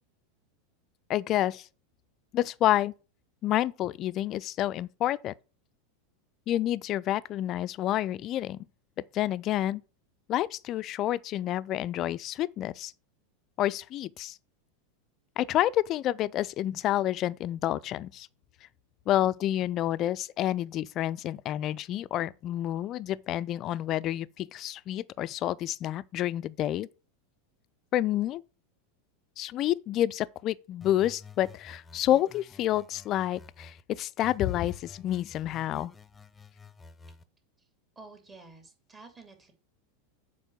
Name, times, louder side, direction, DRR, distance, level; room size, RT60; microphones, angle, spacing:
voice 1, 1.1-1.7 2.3-2.9 3.4-5.3 6.5-8.7 9.1-9.8 10.3-12.9 13.6-14.4 15.4-18.3 19.1-26.9 27.9-28.4 29.4-35.9, left 13 dB, 40° left, 0.4 m, -29 dB
sound 1, 30.8-33.8 34.2-37.2, left 4 dB, 15° left, 0.7 m, -51 dB
voice 2, 38.0-39.5, right 3 dB, 25° right, 2.6 m, -50 dB
7.2 x 4.7 x 6.7 m
hypercardioid pair, 90°, 0 cm